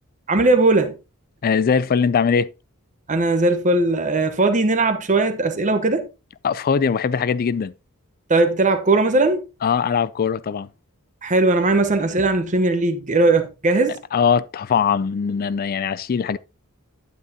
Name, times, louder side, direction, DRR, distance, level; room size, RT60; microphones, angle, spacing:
voice 1, 0.3-1.0 3.1-6.1 8.3-9.5 11.2-14.0, right 2 dB, 35° right, 1.0 m, -19 dB
voice 2, 1.4-2.5 6.4-7.7 9.6-10.7 14.1-16.4, left 6 dB, 45° left, 0.4 m, -21 dB
9.7 x 8.3 x 2.8 m
head